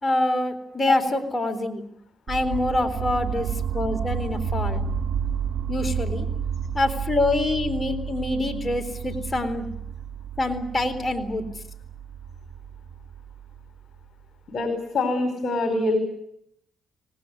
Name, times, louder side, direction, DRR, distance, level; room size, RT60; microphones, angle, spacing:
voice 1, 0.0-1.8 2.3-3.5 3.7-4.8 5.7-6.3 6.7-9.7 10.4-11.4, left 2 dB, 25° left, 4 dB, 3.9 m, -25 dB
sound 1, 2.3-14.2, right 7 dB, 70° right, 3.1 m, -31 dB
voice 2, 14.5-16.0, left 3 dB, 55° left, 7 dB, 5.0 m, -25 dB
25.5 x 19.0 x 9.9 m, 0.75 s
cardioid pair, 90°, 0 cm